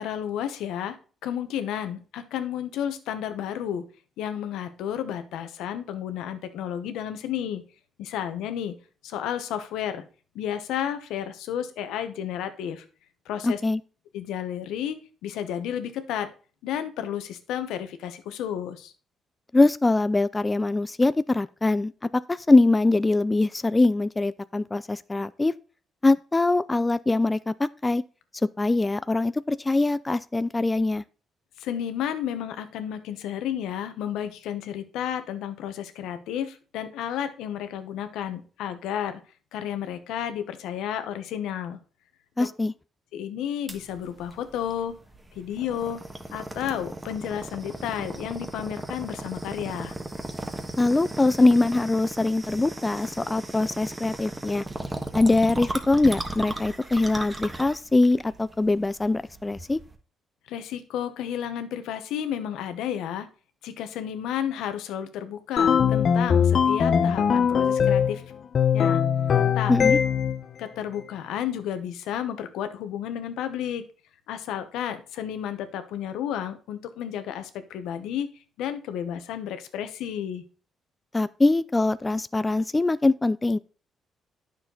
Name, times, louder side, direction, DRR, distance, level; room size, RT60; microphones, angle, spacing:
voice 1, 0.0-3.8 4.2-7.6 8.0-8.8 9.0-10.0 10.3-12.8 13.3-13.6 14.1-16.3 16.6-18.9 31.6-39.2 39.5-41.8 42.4-42.5 43.1-45.0 45.3-46.0 46.3-49.9 60.5-63.3 63.6-68.2 68.7-69.0 69.5-69.7 70.6-73.8 74.3-78.3 78.6-80.4, left 9 dB, 90° left, 1.0 m, -32 dB
voice 2, 13.4-13.8 19.5-25.5 26.0-28.0 28.6-31.0 42.4-42.7 50.8-54.6 55.1-59.8 69.7-70.0 81.1-83.6, left 2 dB, 20° left, 0.4 m, -23 dB
sound 1, 43.7-60.0, right 2 dB, 15° right, 1.4 m, -37 dB
sound 2, 65.6-68.2 68.5-70.4, left 7 dB, 55° left, 0.8 m, -21 dB
9.4 x 6.6 x 3.9 m
cardioid pair, 90°, 0 cm